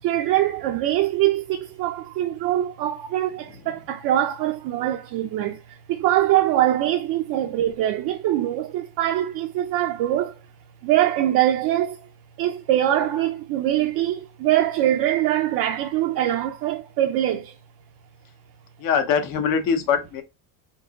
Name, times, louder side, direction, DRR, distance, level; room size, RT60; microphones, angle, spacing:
voice 1, 0.0-10.4 10.8-12.1 12.4-17.6, right 13 dB, 60° right, 0.6 m, -23 dB
voice 2, 18.8-20.2, left 6 dB, 60° left, 0.9 m, -22 dB
4.6 x 3.7 x 2.3 m
cardioid pair, 135°, 39 cm